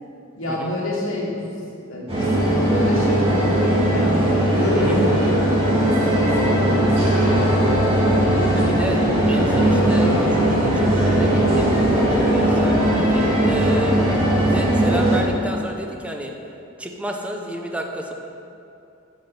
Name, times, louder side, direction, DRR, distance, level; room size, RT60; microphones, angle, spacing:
voice 1, 0.4-1.4 1.7-4.2 4.6-7.7 8.1-8.8, left 1 dB, 80° left, -6 dB, 2.6 m, -27 dB
sound 1, 2.1-15.2, right 1 dB, 30° right, 2.5 m, -18 dB
voice 2, 8.5-9.0 9.3-14.0 14.4-16.3 16.8-18.1, equal, 5° right, 2 dB, 0.7 m, -30 dB
8.9 x 6.1 x 7.0 m, 2.7 s
head